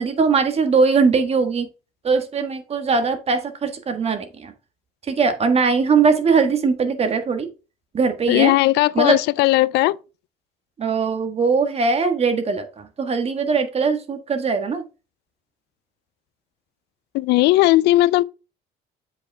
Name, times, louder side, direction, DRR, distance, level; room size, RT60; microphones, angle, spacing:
voice 1, 0.0-1.7 2.0-4.5 5.1-7.5 7.9-8.5 8.9-9.2 10.8-14.8, right 5 dB, 35° right, 1.5 m, -20 dB
voice 2, 8.3-10.0 17.1-18.2, left 18 dB, 80° left, 0.4 m, -17 dB
7.6 x 5.5 x 3.5 m
cardioid pair, 110°, 17 cm